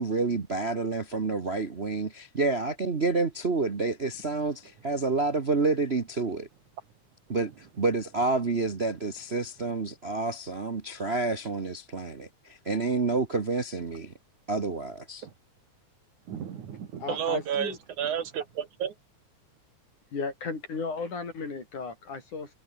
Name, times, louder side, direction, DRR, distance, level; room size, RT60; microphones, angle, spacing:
voice 1, 0.0-6.5 7.3-14.1 14.5-15.3, right 3 dB, 45° right, 0.8 m, -29 dB
voice 2, 16.3-18.9, right 8 dB, 80° right, 3.8 m, -32 dB
voice 3, 17.0-17.8 20.1-22.5, left 4 dB, 90° left, 7.3 m, -35 dB
omnidirectional pair, 3.4 m